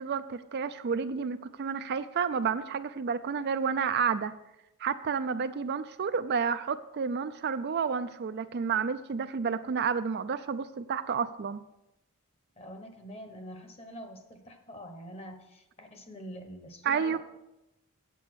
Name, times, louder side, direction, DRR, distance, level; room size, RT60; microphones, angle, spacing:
voice 1, 0.0-4.3 4.8-11.6 16.8-17.2, right 6 dB, 50° right, 11 dB, 0.4 m, -30 dB
voice 2, 12.6-17.2, equal, 25° left, 6 dB, 1.1 m, -45 dB
8.3 x 8.3 x 6.2 m, 0.92 s
head